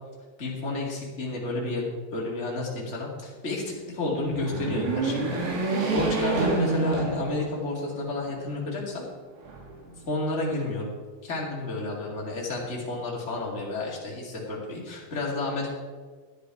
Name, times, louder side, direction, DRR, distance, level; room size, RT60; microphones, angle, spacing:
voice 1, 0.4-1.8 2.1-5.4 5.7-9.0 10.1-10.9 11.2-15.7, left 2 dB, 35° left, -4 dB, 1.0 m, -31 dB
sound 1, 4.1-7.7 8.2-8.3 9.4-10.2, right 3 dB, 90° right, 4.8 m, -28 dB
13.0 x 10.5 x 4.8 m, 1.5 s
omnidirectional pair, 5.5 m